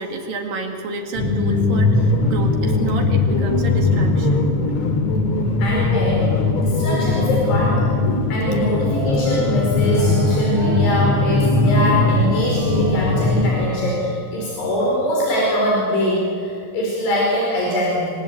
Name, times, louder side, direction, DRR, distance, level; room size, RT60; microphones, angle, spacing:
voice 1, 0.0-4.5, right 4 dB, 60° right, 4 dB, 3.5 m, -30 dB
sound 1, 1.1-13.7, left 2 dB, 50° left, 2.8 m, -19 dB
voice 2, 5.6-6.3 6.6-7.9 8.3-18.1, equal, 75° left, -3 dB, 7.0 m, -22 dB
sound 2, 8.9-14.6, right 1 dB, 35° right, 4.5 m, -35 dB
27.5 x 25.0 x 8.5 m, 2.4 s
omnidirectional pair, 4.9 m